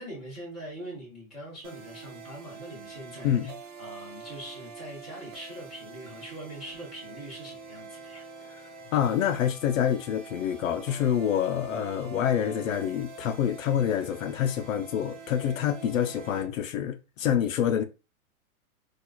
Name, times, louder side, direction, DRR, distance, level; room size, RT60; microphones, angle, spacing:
voice 1, 0.0-3.5 3.8-8.3, equal, ahead, 0.6 m, -42 dB
sound 1, 1.6-16.5, right 5 dB, 40° right, 1.1 m, -45 dB
voice 2, 8.9-17.8, left 9 dB, 65° left, 0.5 m, -27 dB
4.4 x 2.4 x 2.3 m
supercardioid pair, 175°, 43 cm